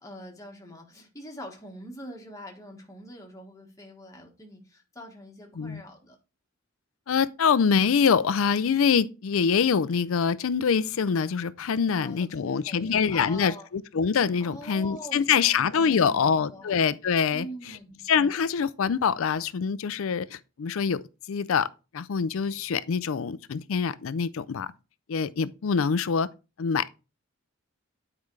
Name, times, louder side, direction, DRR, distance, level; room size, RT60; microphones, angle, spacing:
voice 1, 0.0-6.2 11.9-13.7 14.4-16.7 17.3-18.0, equal, 15° left, 1.4 m, -44 dB
voice 2, 7.1-17.5 18.1-21.0 21.3-21.7 21.9-24.7 25.1-26.3 26.6-26.9, left 6 dB, 65° left, 0.4 m, -25 dB
9.4 x 4.8 x 3.2 m
head